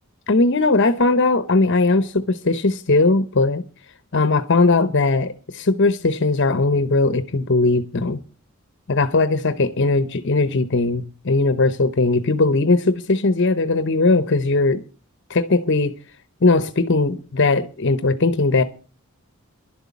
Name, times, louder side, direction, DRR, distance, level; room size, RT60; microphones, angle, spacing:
voice 1, 0.3-3.6 4.1-8.2 8.9-14.8 15.3-15.9 16.4-18.6, left 3 dB, 55° left, 0.8 m, -19 dB
11.5 x 8.1 x 8.3 m
head